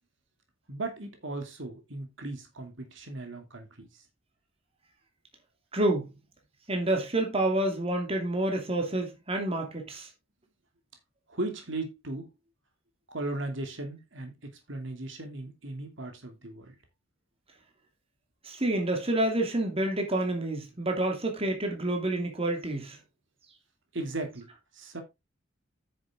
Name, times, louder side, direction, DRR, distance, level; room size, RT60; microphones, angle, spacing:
voice 1, 0.7-4.0 11.3-12.3 13.1-16.7 23.9-24.5 24.7-25.0, right 2 dB, 65° right, 2.6 m, -37 dB
voice 2, 5.7-6.1 6.7-10.1 18.4-23.0, right 1 dB, 30° right, 2.6 m, -28 dB
9.9 x 6.8 x 3.6 m
head